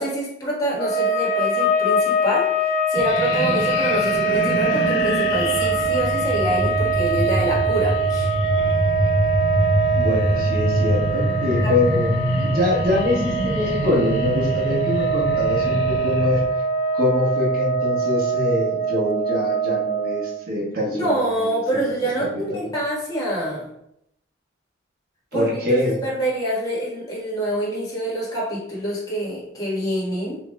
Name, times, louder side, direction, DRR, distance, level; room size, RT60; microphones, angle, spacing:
voice 1, 0.0-2.5 2.9-8.3 11.6-11.7 20.9-23.7 25.3-25.5 25.8-30.4, right 1 dB, 20° left, -7 dB, 1.4 m, -26 dB
sound 1, 0.7-20.4, right 3 dB, 45° left, 0.3 m, -23 dB
sound 2, 2.9-16.4, left 1 dB, 80° left, 0.8 m, -25 dB
voice 2, 9.9-16.4 16.9-21.9 22.2-22.7 25.3-26.0, left 2 dB, 50° right, -3 dB, 1.1 m, -24 dB
5.1 x 3.0 x 2.2 m, 0.77 s
head